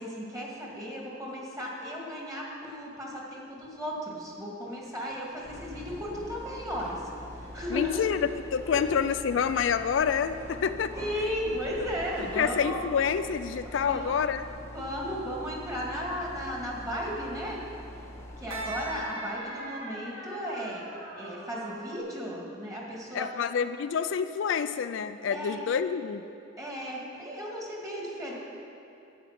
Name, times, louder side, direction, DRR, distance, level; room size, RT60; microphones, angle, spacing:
voice 1, 0.0-7.0 7.4-8.0 8.7-8.8 10.9-12.8 13.6-14.2 14.7-17.6 18.4-20.8 21.1-23.3 25.3-25.7 26.6-28.3, equal, 15° right, -3 dB, 2.2 m, -35 dB
sound 1, 2.3-2.7 3.5-4.2 4.6-6.1 6.5-7.0 7.3-9.0 9.3-13.8, equal, 35° right, 2.0 m, -51 dB
sound 2, 5.4-19.0, left 1 dB, 15° left, 0.9 m, -44 dB
voice 2, 7.7-10.9 12.3-14.4 23.1-26.2, left 7 dB, 65° left, 11 dB, 0.4 m, -28 dB
sound 3, 13.8-22.0, right 1 dB, 90° right, 1.7 m, -44 dB
11.5 x 8.7 x 5.9 m, 2.8 s
head